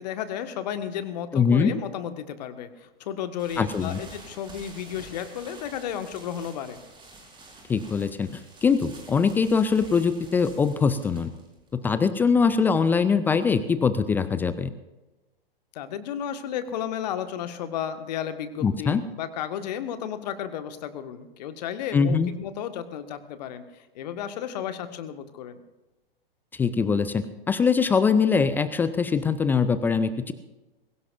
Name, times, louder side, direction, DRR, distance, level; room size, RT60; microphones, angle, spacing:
voice 1, 0.0-6.8 15.7-25.6, left 9 dB, 45° left, 9 dB, 1.7 m, -33 dB
voice 2, 1.3-1.7 3.6-4.0 7.7-11.3 11.7-14.7 18.6-19.0 21.9-22.3 26.5-30.3, left 5 dB, 5° left, 13 dB, 0.4 m, -22 dB
sound 1, 3.4-13.0, right 2 dB, 15° right, 4.9 m, -49 dB
21.5 x 17.5 x 2.6 m, 1.1 s
figure-of-eight pair, 105°, 29 cm